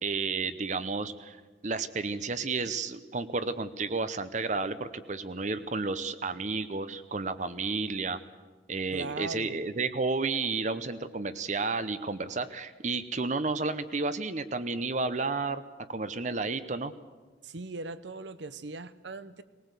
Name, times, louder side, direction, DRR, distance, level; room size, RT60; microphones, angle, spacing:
voice 1, 0.0-1.4 1.6-8.2 8.7-15.6 15.9-16.9, right 3 dB, 40° right, 12 dB, 0.8 m, -31 dB
voice 2, 8.9-9.5 17.4-19.4, right 3 dB, 70° right, 15 dB, 0.9 m, -39 dB
19.0 x 19.0 x 8.2 m, 1.4 s
head